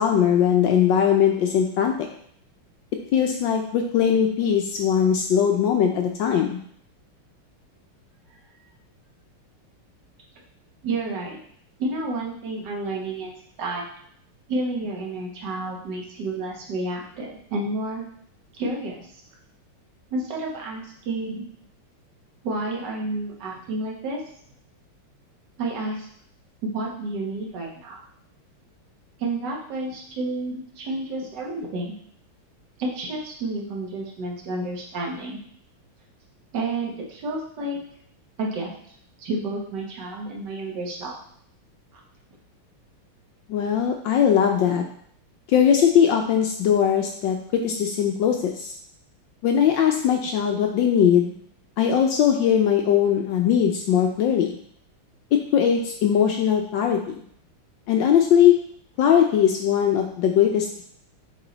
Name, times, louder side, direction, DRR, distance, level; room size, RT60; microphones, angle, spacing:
voice 1, 0.0-1.9 3.1-6.6 43.5-44.8 45.5-48.7 49.4-51.3 51.8-54.6 55.5-57.2 57.9-58.6 59.0-60.8, left 8 dB, 70° left, 3 dB, 1.1 m, -20 dB
voice 2, 10.8-11.4 11.8-13.3 13.6-13.8 14.5-18.1 18.5-19.0 20.1-21.5 22.4-24.2 25.6-26.1 26.6-28.0 29.2-31.9 32.8-35.4 36.5-37.8 38.4-38.7 39.2-41.2, right 2 dB, 55° right, -1 dB, 1.8 m, -30 dB
7.2 x 3.8 x 3.9 m, 0.63 s
omnidirectional pair, 2.4 m